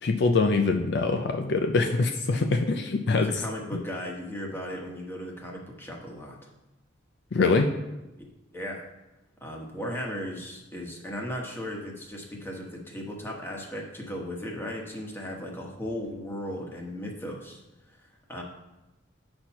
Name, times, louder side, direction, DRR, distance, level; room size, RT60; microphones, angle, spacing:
voice 1, 0.0-3.3 3.7-3.8 7.3-7.7, left 3 dB, 60° left, 5 dB, 0.5 m, -24 dB
voice 2, 3.2-6.4 8.5-8.8 9.4-17.6 18.0-18.4, equal, 10° left, -1 dB, 1.3 m, -36 dB
7.8 x 4.4 x 5.7 m, 0.99 s
head